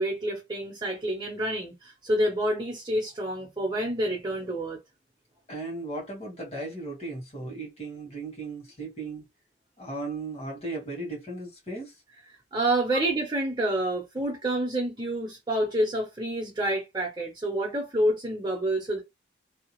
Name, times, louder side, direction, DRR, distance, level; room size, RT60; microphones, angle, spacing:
voice 1, 0.0-4.8 12.5-19.0, right 1 dB, 25° right, 0.9 m, -28 dB
voice 2, 5.5-9.2 9.8-11.9, right 2 dB, 35° left, 1.6 m, -36 dB
2.8 x 2.3 x 3.1 m
head